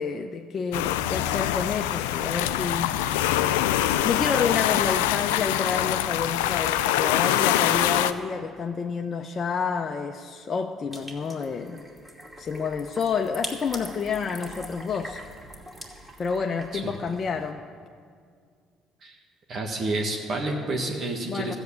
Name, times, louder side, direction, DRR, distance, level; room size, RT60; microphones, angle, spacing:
voice 1, 0.0-3.4 4.0-11.8 12.4-15.2 16.2-17.6 21.3-21.5, left 5 dB, 45° left, 4 dB, 0.7 m, -29 dB
sound 1, 0.7-8.1, left 12 dB, 85° left, 0.4 m, -24 dB
sound 2, 10.9-17.5, equal, 15° right, 2.5 m, -42 dB
voice 2, 19.5-21.5, right 2 dB, 55° right, 1 dB, 1.5 m, -29 dB
13.0 x 8.0 x 8.4 m, 2.1 s
hypercardioid pair, 60°, 0 cm